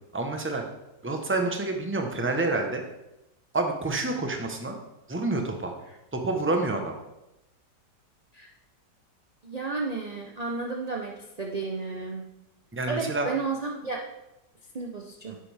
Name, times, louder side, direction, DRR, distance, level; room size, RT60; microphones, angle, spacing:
voice 1, 0.1-0.6 1.0-2.8 3.5-4.8 5.1-5.7 6.1-7.0 12.7-13.3, right 2 dB, 10° right, 3 dB, 0.7 m, -28 dB
voice 2, 9.4-12.3 12.9-14.0 14.7-15.4, right 4 dB, 45° right, 0 dB, 0.5 m, -32 dB
10.5 x 8.2 x 3.5 m, 0.92 s
omnidirectional pair, 1.9 m